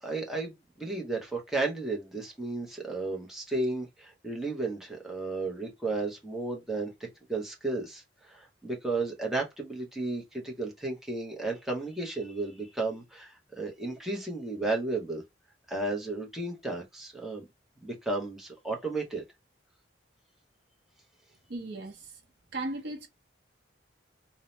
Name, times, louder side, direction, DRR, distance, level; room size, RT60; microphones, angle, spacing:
voice 1, 0.0-15.2 15.7-17.4 17.8-19.2, right 2 dB, ahead, 0.7 m, -33 dB
voice 2, 21.5-22.2 22.5-23.1, right 2 dB, 60° right, 0.6 m, -36 dB
2.7 x 2.0 x 3.0 m
head